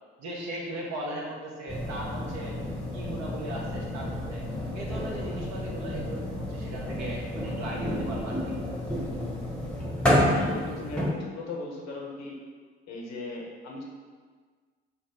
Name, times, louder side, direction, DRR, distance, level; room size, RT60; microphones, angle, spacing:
voice 1, 0.2-2.5 2.9-4.4 4.7-8.6, right 1 dB, 55° right, -2 dB, 1.0 m, -38 dB
sound 1, 1.7-11.1, left 1 dB, 5° left, 1.0 m, -30 dB
voice 2, 10.3-12.4 12.9-13.8, left 2 dB, 55° left, -2 dB, 1.0 m, -38 dB
5.6 x 2.1 x 3.7 m, 1.6 s
figure-of-eight pair, 50°, 33 cm